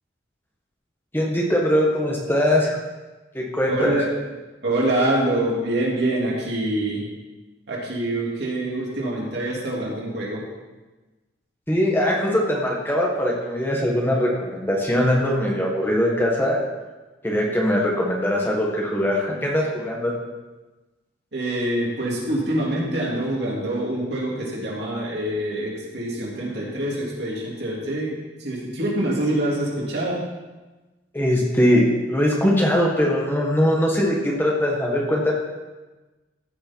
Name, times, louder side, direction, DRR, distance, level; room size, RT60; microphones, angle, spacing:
voice 1, 1.1-2.8 3.3-4.0 11.7-16.6 17.2-20.1 31.1-35.3, equal, 10° left, -2 dB, 1.4 m, -21 dB
voice 2, 3.7-4.1 4.6-7.0 7.7-10.4 21.3-28.1 28.4-30.2, right 1 dB, 60° right, -4 dB, 3.1 m, -25 dB
14.5 x 6.6 x 4.6 m, 1.2 s
head